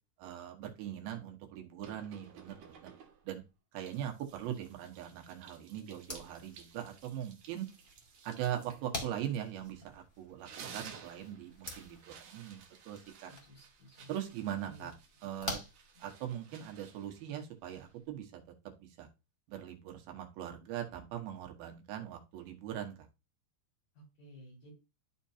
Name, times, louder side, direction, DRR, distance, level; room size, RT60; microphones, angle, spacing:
voice 1, 0.2-2.9 3.2-3.4 3.7-7.7 8.2-10.5 10.7-13.3 14.1-14.9 15.2-15.6 16.0-18.4 18.8-19.1 19.5-23.0, right 10 dB, 80° right, 4 dB, 3.2 m, -41 dB
sound 1, 1.8-3.4 3.9-9.9 10.2-18.1, right 6 dB, 65° right, 2.1 m, -55 dB
sound 2, 5.9-16.6, left 2 dB, 25° left, 1.1 m, -48 dB
voice 2, 13.3-14.1 14.6-14.9 15.9-16.0 23.9-24.7, equal, 65° left, -7 dB, 6.5 m, -55 dB
12.5 x 4.5 x 2.8 m, 0.27 s
omnidirectional pair, 4.3 m